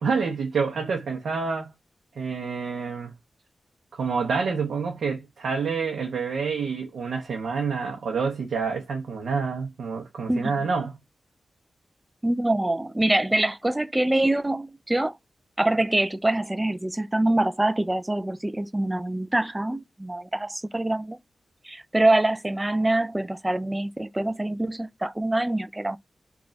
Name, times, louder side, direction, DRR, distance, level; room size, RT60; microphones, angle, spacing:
voice 1, 0.0-1.7 2.2-3.1 3.9-11.0, right 5 dB, 80° right, 0.7 m, -28 dB
voice 2, 10.3-10.7 12.2-15.1 15.6-21.2 21.6-26.0, right 1 dB, 20° right, 0.4 m, -25 dB
3.2 x 2.3 x 3.8 m
cardioid pair, 40°, 0 cm